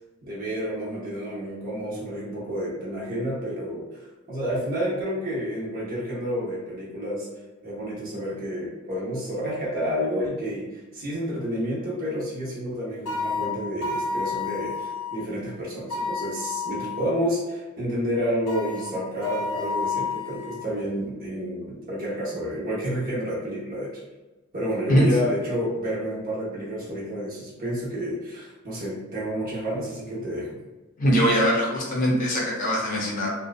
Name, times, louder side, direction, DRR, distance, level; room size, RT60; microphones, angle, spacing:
voice 1, 0.2-3.9 4.3-7.3 7.6-23.9 24.5-30.6, equal, 40° right, -7 dB, 0.7 m, -30 dB
sound 1, 13.1-15.2 15.9-17.2 18.5-20.6, left 4 dB, 75° left, 0.6 m, -30 dB
voice 2, 31.0-33.3, equal, 35° left, -4 dB, 0.7 m, -22 dB
2.6 x 2.3 x 2.3 m, 1.1 s
head